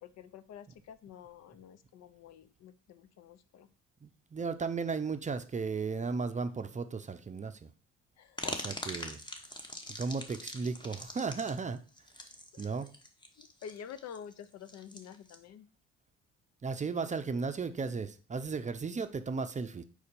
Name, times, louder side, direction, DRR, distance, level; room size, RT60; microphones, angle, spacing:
voice 1, 0.0-3.7 8.2-8.6 12.5-12.8 13.4-15.7, left 8 dB, 60° left, 13 dB, 0.6 m, -49 dB
voice 2, 4.0-7.7 8.6-9.2 10.0-11.8 12.6-12.9 16.6-19.8, right 4 dB, 25° right, 9 dB, 0.6 m, -35 dB
sound 1, 8.4-15.4, left 1 dB, 15° left, 1.0 m, -42 dB
4.8 x 4.2 x 5.2 m, 0.39 s
supercardioid pair, 80°, 30 cm